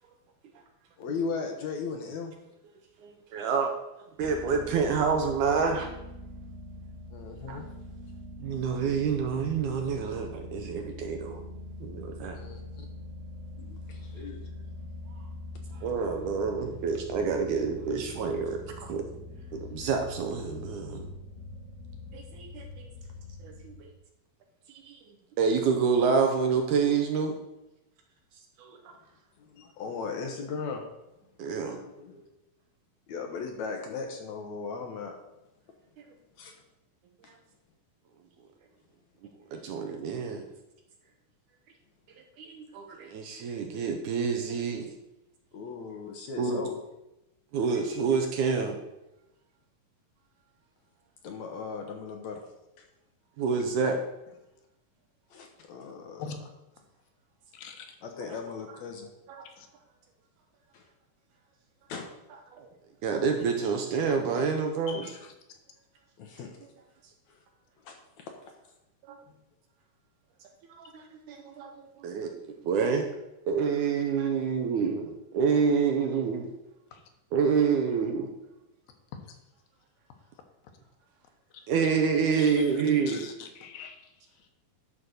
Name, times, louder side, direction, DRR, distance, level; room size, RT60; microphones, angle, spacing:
voice 1, 1.0-2.3 7.1-7.7 12.3-12.9 13.6-14.4 29.4-30.9 31.7-32.2 33.1-35.2 36.4-36.5 45.5-46.8 51.2-52.4 52.8-52.9 55.3-56.2 58.0-59.1 60.7-60.8 61.9-62.1 66.2-66.6 67.3-67.4 67.8-68.3 69.3-69.4, left 5 dB, 65° left, 3 dB, 1.9 m, -37 dB
voice 2, 3.0-3.7 4.2-5.9 7.5-7.6 8.4-11.4 11.8-12.4 15.8-19.0 19.5-21.1 22.1-22.9 23.4-23.9 24.7-25.0 25.4-27.4 28.6-28.9 31.4-31.8 39.5-40.5 42.4-44.9 46.4-46.6 47.5-48.8 53.4-54.0 59.3-59.5 62.5-62.7 63.0-65.0 69.1-69.2 70.8-73.1 73.5-76.5 77.3-78.3 81.7-83.2, right 5 dB, 70° right, 4 dB, 2.0 m, -28 dB
sound 1, 4.2-23.8, left 1 dB, 55° right, 2.4 m, -43 dB
voice 3, 57.5-58.0 59.6-59.7 64.9-65.6 76.9-77.0 79.3-79.4 81.5-81.6 82.4-84.5, left 6 dB, 85° left, 5 dB, 2.9 m, -44 dB
11.0 x 4.1 x 6.4 m, 0.91 s
omnidirectional pair, 4.1 m